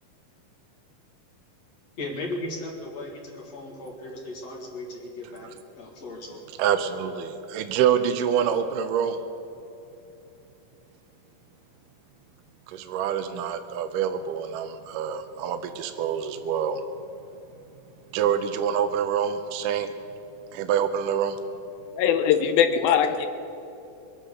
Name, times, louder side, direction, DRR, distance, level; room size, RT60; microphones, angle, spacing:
voice 1, 2.0-6.4, left 1 dB, 55° left, 0 dB, 2.6 m, -36 dB
voice 2, 6.6-9.2 12.7-16.8 18.1-19.9 20.5-21.4, right 8 dB, 75° right, 7 dB, 2.1 m, -26 dB
voice 3, 21.9-23.3, left 8 dB, 85° left, 8 dB, 2.6 m, -21 dB
22.5 x 9.7 x 6.6 m, 2.8 s
omnidirectional pair, 4.1 m